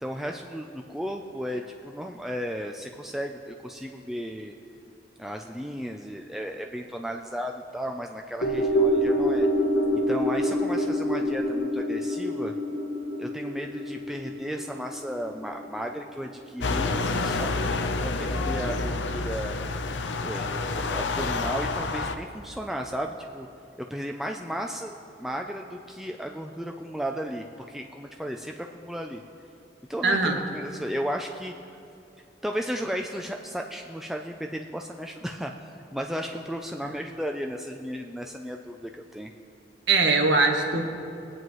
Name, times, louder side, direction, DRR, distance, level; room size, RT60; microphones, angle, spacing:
voice 1, 0.0-4.5 5.2-9.5 9.9-12.5 13.2-17.0 17.2-17.6 18.0-19.6 20.2-23.5 23.9-29.2 29.9-31.5 32.4-35.5 35.9-39.3, equal, ahead, 2 dB, 0.4 m, -34 dB
sound 1, 8.4-16.8 17.2-17.3, equal, 60° left, 0.9 m, -27 dB
sound 2, 16.6-22.1, left 3 dB, 90° left, 0.7 m, -28 dB
voice 2, 30.0-30.4 36.8-36.9 39.9-40.8, right 3 dB, 80° right, 3 dB, 1.2 m, -21 dB
22.0 x 9.2 x 3.1 m, 2.7 s
head